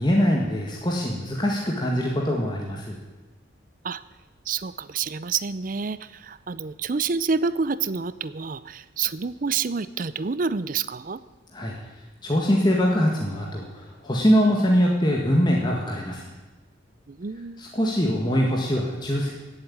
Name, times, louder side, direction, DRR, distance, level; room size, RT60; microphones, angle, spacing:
voice 1, 0.0-3.0 11.5-11.8 12.2-13.7 14.0-16.2 17.6-19.3, equal, 20° left, -2 dB, 1.8 m, -22 dB
voice 2, 4.5-11.2 17.1-17.6, right 5 dB, 45° right, 16 dB, 0.5 m, -28 dB
17.0 x 8.0 x 8.5 m, 1.2 s
head